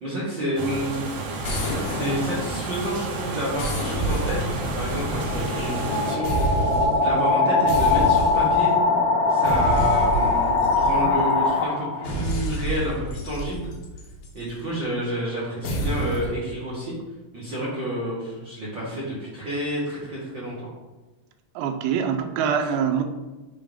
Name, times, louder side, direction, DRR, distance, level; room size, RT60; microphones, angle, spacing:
voice 1, 0.0-1.0 1.8-6.3 6.6-8.7 9.3-13.7 14.3-16.9 17.3-20.7 22.6-22.7, equal, 45° right, -8 dB, 1.6 m, -30 dB
sound 1, 0.6-6.2, right 3 dB, 65° right, 2.0 m, -31 dB
sound 2, 1.4-3.0 3.6-5.9 6.2-7.1 7.7-8.7 9.4-11.3 12.0-14.5 15.6-16.4, right 1 dB, 70° left, 2.5 m, -29 dB
sound 3, 4.6-12.2, left 3 dB, 90° left, 2.7 m, -22 dB
voice 2, 21.6-23.0, right 7 dB, 85° right, 5 dB, 2.3 m, -24 dB
6.9 x 3.0 x 5.2 m, 1.2 s
omnidirectional pair, 4.0 m